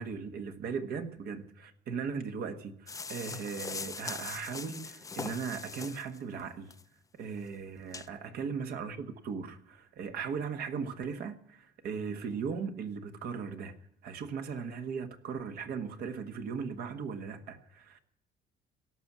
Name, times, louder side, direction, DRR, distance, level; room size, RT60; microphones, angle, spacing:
voice 1, 0.0-6.7 7.1-13.7 14.0-18.0, right 6 dB, 65° right, 1.4 m, -38 dB
sound 1, 2.9-6.2 6.7-6.8 7.4-7.5 7.9-8.1, left 4 dB, 20° left, 0.5 m, -41 dB
17.5 x 6.2 x 8.5 m
cardioid pair, 110°, 17 cm